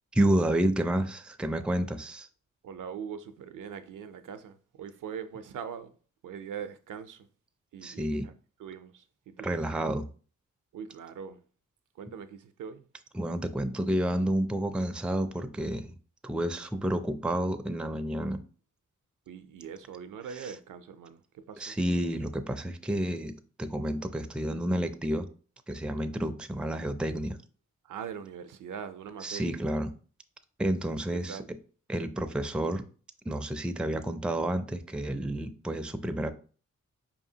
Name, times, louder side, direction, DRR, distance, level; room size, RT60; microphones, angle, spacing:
voice 1, 0.1-2.3 7.8-8.3 9.4-10.1 13.1-15.9 16.2-18.4 20.4-20.5 21.6-23.3 23.6-25.3 25.7-27.4 29.2-29.9 30.6-31.4 31.9-32.8 33.3-36.3, right 1 dB, 5° right, 0.4 m, -30 dB
voice 2, 2.6-5.9 6.2-7.3 7.7-8.3 8.6-9.6 10.7-11.4 12.0-12.9 19.3-21.8 27.8-29.6 31.1-31.5, right 7 dB, 70° right, 0.5 m, -42 dB
4.7 x 2.8 x 2.7 m
cardioid pair, 45°, 32 cm